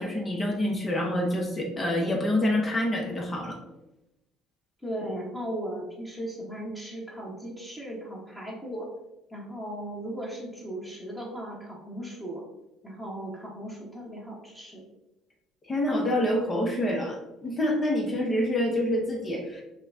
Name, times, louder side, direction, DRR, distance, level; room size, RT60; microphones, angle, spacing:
voice 1, 0.0-3.6 15.6-19.6, left 1 dB, 30° left, 0 dB, 1.0 m, -27 dB
voice 2, 4.8-8.9 9.3-12.4 12.8-14.8, right 1 dB, 10° left, -6 dB, 1.3 m, -37 dB
5.6 x 2.3 x 2.7 m, 0.94 s
hypercardioid pair, 60°, 0 cm